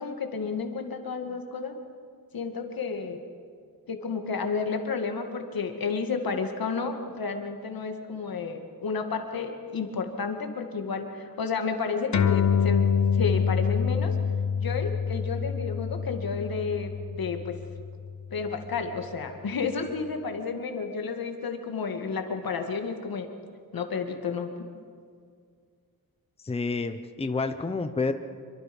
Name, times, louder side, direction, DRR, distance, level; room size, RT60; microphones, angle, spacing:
voice 1, 0.0-1.7 2.3-3.2 3.9-14.1 14.6-17.6 18.3-23.3 23.7-24.5, left 5 dB, 75° left, 5 dB, 2.2 m, -31 dB
sound 1, 12.1-19.0, left 6 dB, 50° left, 1.1 m, -27 dB
voice 2, 26.4-28.1, left 3 dB, 15° left, 8 dB, 0.8 m, -29 dB
26.5 x 23.5 x 5.5 m, 2.1 s
wide cardioid pair, 165°, 35 cm